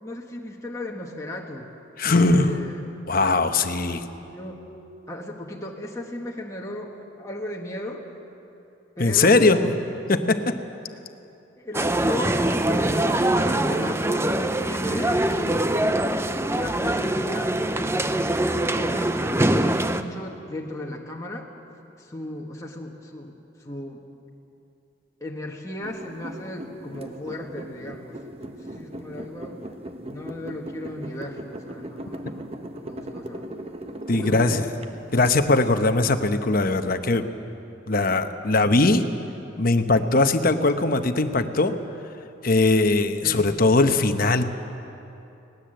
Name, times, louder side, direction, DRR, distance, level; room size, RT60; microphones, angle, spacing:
voice 1, 0.0-1.7 2.2-2.9 4.3-4.7 5.1-8.1 9.0-9.7 11.6-15.8 16.5-17.9 18.6-21.5 22.0-24.0 25.2-28.2 28.5-29.6 30.0-33.5 34.1-34.7 35.1-35.2 43.2-43.4, left 1 dB, 15° left, -1 dB, 1.5 m, -36 dB
voice 2, 2.0-2.5 3.1-4.0 9.0-9.8 10.1-10.5 34.1-34.7 35.1-37.3 37.9-39.1 39.6-41.7 42.4-44.4, left 2 dB, 45° left, 8 dB, 1.0 m, -20 dB
sound 1, 11.7-20.0, right 1 dB, 15° right, 0.5 m, -23 dB
sound 2, 25.8-35.3, right 1 dB, 30° right, 0.9 m, -38 dB
20.5 x 18.0 x 7.8 m, 2.8 s
head